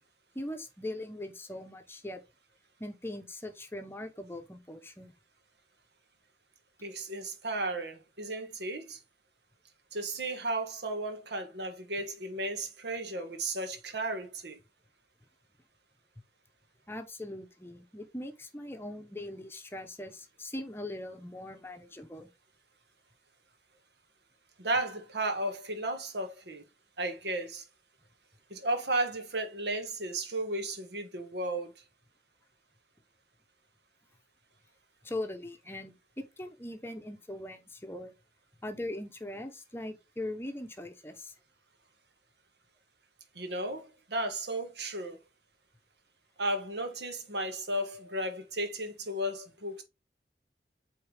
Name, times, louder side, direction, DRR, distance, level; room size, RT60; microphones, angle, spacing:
voice 1, 0.3-2.2 2.8-5.1 16.9-22.3 35.0-38.1 38.6-41.3, left 1 dB, 15° left, 0.8 m, -40 dB
voice 2, 6.8-9.0 9.9-14.6 24.6-26.6 27.0-27.6 28.5-31.7 43.3-45.2 46.4-49.8, right 1 dB, 80° right, 1.5 m, -34 dB
8.5 x 3.6 x 3.4 m
head